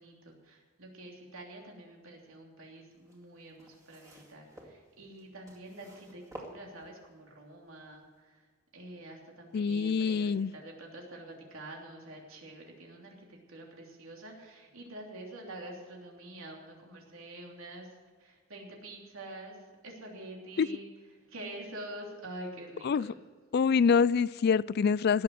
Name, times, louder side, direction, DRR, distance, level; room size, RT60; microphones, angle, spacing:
voice 1, 0.0-8.4 8.7-20.9 21.1-23.1, right 1 dB, 80° right, 0 dB, 3.2 m, -47 dB
sound 1, 2.9-7.2 8.0-8.1, right 1 dB, 15° right, 2.3 m, -51 dB
voice 2, 9.5-10.5 20.6-20.7 22.8-23.1 23.5-25.2, left 6 dB, 50° left, 21 dB, 0.3 m, -25 dB
18.5 x 7.1 x 7.8 m, 1.5 s
head